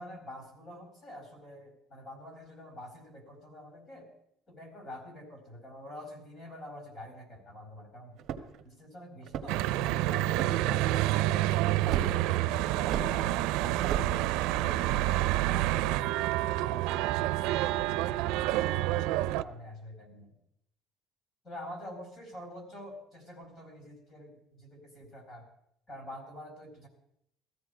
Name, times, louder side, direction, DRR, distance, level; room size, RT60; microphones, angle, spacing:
voice 1, 0.0-4.1 4.5-8.2 8.6-9.6 10.0-14.8 15.4-19.0 19.3-20.4 21.4-25.5 25.9-26.9, left 1 dB, 30° left, 3 dB, 4.2 m, -47 dB
sound 1, 8.2-8.6 9.2-9.7 10.3-10.8 11.9-12.1 12.9-13.1 13.8-14.1, right 9 dB, 45° right, 1.3 m, -34 dB
Church bell / Traffic noise roadway noise, 9.5-19.4, right 15 dB, 85° right, 0.6 m, -28 dB
19.0 x 14.0 x 5.0 m, 0.74 s
cardioid pair, 175°, 0 cm